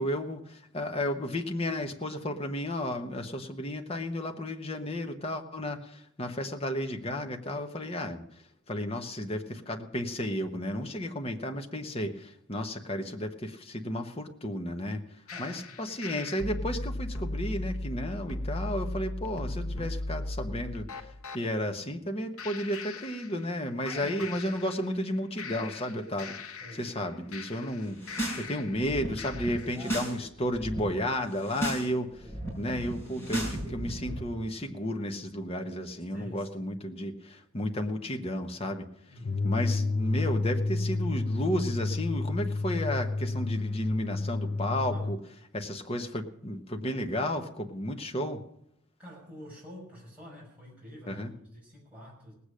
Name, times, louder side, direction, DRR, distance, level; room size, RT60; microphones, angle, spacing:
voice 1, 0.0-8.2 8.7-15.0 15.4-21.1 21.3-28.0 28.4-32.1 32.6-38.8 39.4-45.2 45.5-48.4 51.1-51.3, left 1 dB, 30° left, 5 dB, 1.1 m, -33 dB
sound 1, 15.3-21.4 22.4-23.6 23.9-25.1 25.4-28.8 29.2-29.8, left 2 dB, 90° left, 1.0 m, -38 dB
voice 2, 15.3-15.8 23.9-24.3 26.6-27.0 29.6-30.1 32.2-32.4 36.1-36.5 39.1-39.5 44.9-45.2 49.0-52.3, equal, 5° right, -5 dB, 5.9 m, -48 dB
sound 2, 27.9-28.4 28.7-30.1 30.4-30.8 31.3-31.8 32.1-34.2, right 1 dB, 10° left, 5.6 m, -35 dB
sound 3, 39.2-45.2, left 3 dB, 45° left, 0.6 m, -30 dB
18.5 x 8.4 x 6.4 m, 0.73 s
head